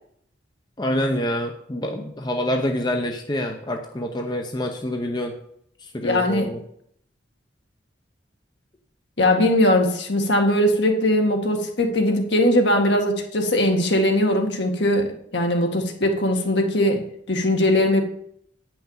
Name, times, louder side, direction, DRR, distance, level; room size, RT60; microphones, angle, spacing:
voice 1, 0.8-5.3 5.8-6.6, left 1 dB, 20° left, 3 dB, 0.8 m, -26 dB
voice 2, 6.0-6.5 9.2-18.0, left 1 dB, 65° left, 3 dB, 1.9 m, -20 dB
9.3 x 6.0 x 7.2 m, 0.68 s
head